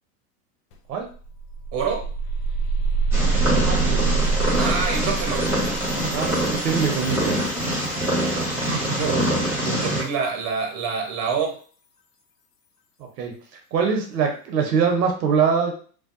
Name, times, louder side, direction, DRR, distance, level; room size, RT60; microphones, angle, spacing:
sound 1, 0.7-0.8 1.1-7.9, right 4 dB, 75° left, 0.6 m, -26 dB
voice 1, 1.7-2.1 4.6-5.5 8.5-9.3 9.6-11.6, right 5 dB, 40° right, 3 dB, 0.8 m, -27 dB
Purr, 3.1-10.0, right 1 dB, 5° right, 1.1 m, -24 dB
voice 2, 3.5-4.1 6.1-7.4 13.2-13.3 13.7-15.7, right 6 dB, 80° right, 3 dB, 0.8 m, -23 dB
2.7 x 2.2 x 2.5 m, 0.41 s
hypercardioid pair, 100°, 48 cm